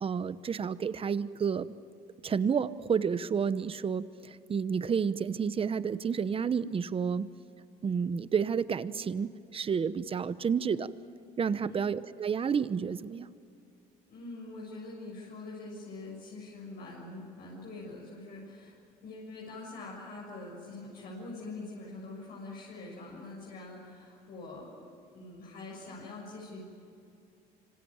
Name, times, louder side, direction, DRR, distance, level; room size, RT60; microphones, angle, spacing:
voice 1, 0.0-1.7 2.2-7.3 7.8-10.9 11.4-13.3, right 6 dB, 35° right, 14 dB, 1.0 m, -30 dB
voice 2, 11.5-11.9 14.1-18.7 19.0-24.9 25.1-26.6, left 2 dB, 65° left, -3 dB, 7.0 m, -44 dB
26.0 x 25.0 x 8.9 m, 2.5 s
cardioid pair, 110°, 17 cm